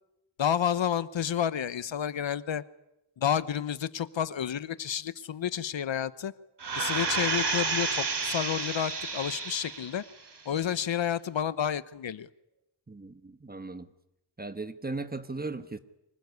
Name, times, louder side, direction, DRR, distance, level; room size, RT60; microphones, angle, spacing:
voice 1, 0.4-2.6 3.2-6.3 6.7-10.0 10.4-12.3, left 9 dB, 75° left, 15 dB, 1.0 m, -30 dB
sound 1, 6.6-10.0 10.5-10.6, right 4 dB, 60° right, 3.6 m, -30 dB
voice 2, 12.9-13.9 14.4-15.8, right 3 dB, 20° right, 11 dB, 1.2 m, -37 dB
25.0 x 20.5 x 9.7 m, 0.88 s
wide cardioid pair, 155°, 46 cm